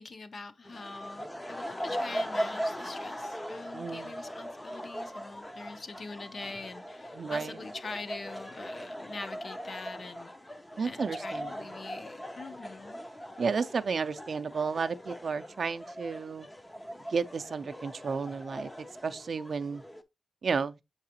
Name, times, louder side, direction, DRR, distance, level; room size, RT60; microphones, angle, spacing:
voice 1, 0.0-10.3 10.8-13.0, left 3 dB, 50° left, 0.7 m, -44 dB
sound 1, 0.6-20.0, equal, 10° left, 0.5 m, -40 dB
voice 2, 3.7-4.1 7.1-7.6 10.8-11.5 13.4-16.5 17.1-18.7 19.0-19.8 20.4-20.8, right 5 dB, 55° right, 0.4 m, -32 dB
7.5 x 4.7 x 2.8 m
wide cardioid pair, 175°, 0 cm